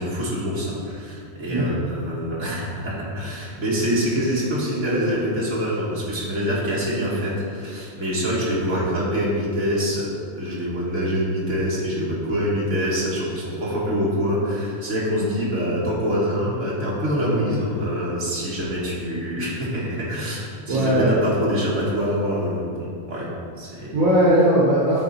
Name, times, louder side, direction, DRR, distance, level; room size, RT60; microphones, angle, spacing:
voice 1, 0.0-23.3 23.6-24.0, equal, 65° right, -6 dB, 2.0 m, -25 dB
voice 2, 20.7-21.1 23.7-25.0, right 1 dB, 80° right, -7 dB, 1.6 m, -18 dB
10.0 x 4.0 x 4.1 m, 2.4 s
omnidirectional pair, 1.4 m